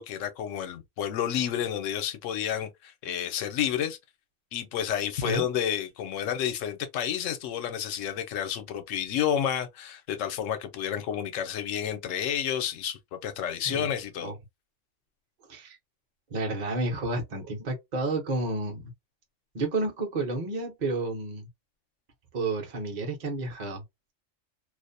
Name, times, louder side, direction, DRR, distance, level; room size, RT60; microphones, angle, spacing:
voice 1, 0.0-4.0 4.5-14.3, left 9 dB, 85° left, 0.9 m, -30 dB
voice 2, 16.3-18.9 19.5-21.5 22.3-23.8, right 2 dB, 45° right, 0.7 m, -31 dB
2.4 x 2.0 x 2.5 m
omnidirectional pair, 1.3 m